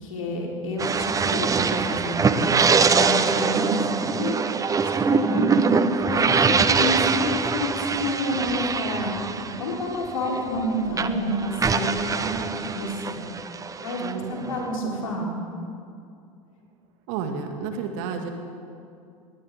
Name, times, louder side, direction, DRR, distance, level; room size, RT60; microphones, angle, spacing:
voice 1, 0.0-3.8 4.2-4.5 4.8-9.2 9.6-12.3 12.5-13.2 13.8-14.0 14.3-15.3, left 1 dB, 80° left, -2 dB, 3.9 m, -29 dB
sound 1, 0.8-10.6 10.9-14.8, right 5 dB, 20° right, 0.8 m, -23 dB
voice 2, 14.0-14.6 17.1-18.3, right 6 dB, 60° right, 5 dB, 2.1 m, -31 dB
21.5 x 18.0 x 3.7 m, 2.4 s
hypercardioid pair, 80°, 17 cm